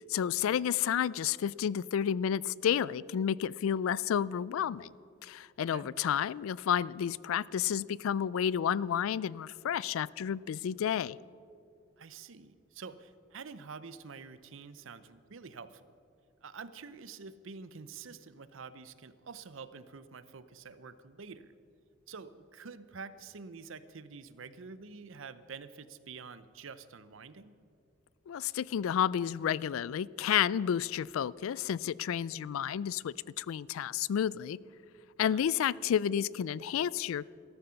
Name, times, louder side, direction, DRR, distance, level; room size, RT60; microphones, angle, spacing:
voice 1, 0.0-4.9 5.2-11.2 28.3-34.6 35.2-37.3, left 9 dB, 85° left, 22 dB, 0.3 m, -31 dB
voice 2, 12.0-15.9 16.4-21.5 22.1-27.5 35.2-35.4, right 5 dB, 75° right, 14 dB, 0.7 m, -47 dB
14.5 x 13.5 x 5.7 m, 2.4 s
head